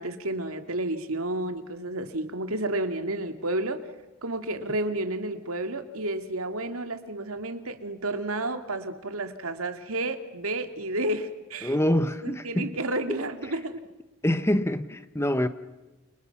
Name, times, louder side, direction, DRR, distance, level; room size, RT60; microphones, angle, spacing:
voice 1, 0.0-3.8 4.2-11.7 12.2-13.8, right 2 dB, 85° right, 2.4 m, -31 dB
voice 2, 11.6-12.8 14.2-15.5, left 1 dB, 10° left, 1.1 m, -25 dB
29.5 x 29.5 x 6.0 m
head